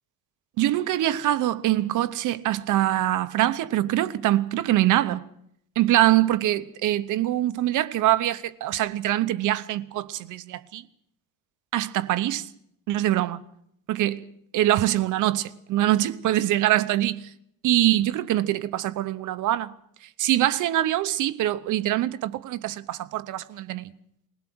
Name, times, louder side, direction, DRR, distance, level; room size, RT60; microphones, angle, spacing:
voice 1, 0.6-5.2 5.8-10.8 11.7-12.5 12.9-13.4 13.9-14.3 14.5-17.2 17.6-19.7 20.2-23.9, right 14 dB, 60° right, 0.9 m, -24 dB
20.5 x 20.5 x 6.2 m
cardioid pair, 180°, 35 cm